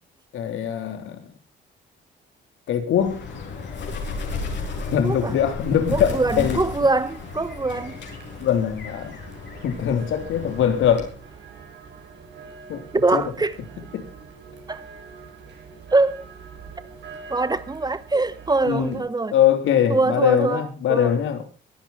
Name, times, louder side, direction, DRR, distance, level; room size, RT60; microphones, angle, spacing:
voice 1, 0.3-1.3 2.7-3.2 4.9-6.6 8.4-9.2 9.6-11.1 12.7-12.8 13.1-13.2 13.9-14.1 18.6-19.0 19.3-21.4, left 9 dB, 80° left, 3.5 m, -22 dB
Bird, 3.0-11.2, left 4 dB, 60° left, 6.9 m, -34 dB
voice 2, 5.0-5.4 5.9-8.0 12.9-13.6 14.7-14.8 15.9-16.2 17.3-19.3 19.9-20.6 20.9-21.1, right 3 dB, 20° right, 1.0 m, -23 dB
sound 1, 6.9-19.0, right 5 dB, 60° right, 6.7 m, -44 dB
23.0 x 10.0 x 4.2 m
cardioid pair, 90°, 20 cm